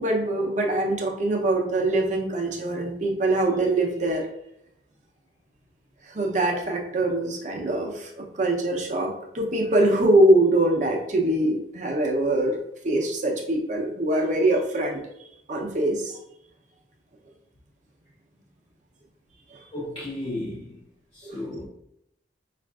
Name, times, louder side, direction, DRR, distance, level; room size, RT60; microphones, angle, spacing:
voice 1, 0.0-4.3 6.1-12.6 12.8-15.0 15.5-16.1 19.5-19.6 21.2-21.4, right 1 dB, 40° right, 0.6 m, -23 dB
voice 2, 19.7-20.8 21.1-21.7, left 1 dB, 30° left, 0.4 m, -34 dB
5.0 x 2.4 x 2.3 m
head